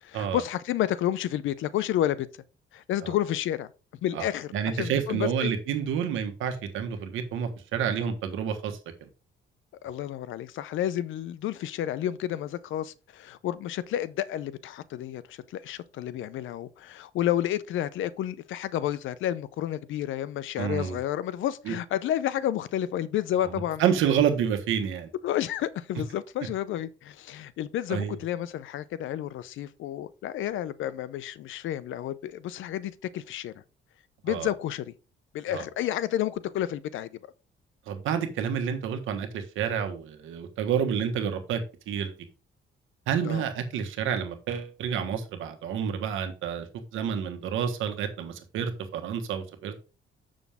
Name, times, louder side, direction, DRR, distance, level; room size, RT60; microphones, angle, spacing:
voice 1, 0.0-2.3 2.7-3.7 4.0-5.5 9.8-23.8 25.2-33.5 34.2-34.9 35.3-37.1 43.2-43.4, left 12 dB, 80° left, 0.6 m, -30 dB
voice 2, 4.5-8.8 20.6-21.0 21.7-21.8 23.4-25.1 27.9-28.2 34.3-34.5 35.5-35.6 37.9-41.6 41.9-42.1 43.1-49.8, right 8 dB, 85° right, 1.4 m, -29 dB
7.1 x 6.3 x 3.5 m
cardioid pair, 90°, 20 cm